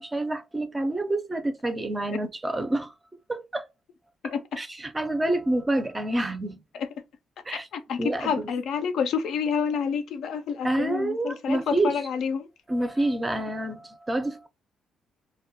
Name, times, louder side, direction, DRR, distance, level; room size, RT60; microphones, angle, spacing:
voice 1, 0.0-2.9 3.3-3.7 4.2-6.6 7.5-7.7 8.0-8.5 10.6-12.0 12.7-14.5, right 1 dB, 20° right, 0.4 m, -28 dB
voice 2, 4.2-4.6 7.5-12.5, left 6 dB, 75° left, 0.4 m, -29 dB
2.2 x 2.1 x 2.7 m
cardioid pair, 90°, 0 cm